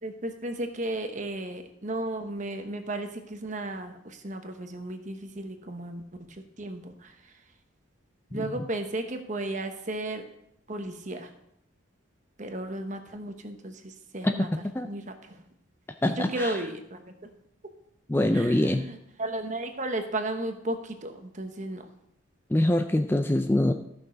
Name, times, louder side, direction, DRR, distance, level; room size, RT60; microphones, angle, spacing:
voice 1, 0.0-6.0 6.6-7.1 8.3-10.2 10.7-11.3 12.4-14.5 14.8-15.0 16.2-17.0 18.3-21.9, right 1 dB, 35° right, 6 dB, 1.0 m, -34 dB
voice 2, 8.3-8.6 14.2-14.9 16.0-16.6 18.1-18.9 22.5-23.7, left 1 dB, 10° left, 7 dB, 0.4 m, -25 dB
14.0 x 6.1 x 5.1 m, 0.80 s
head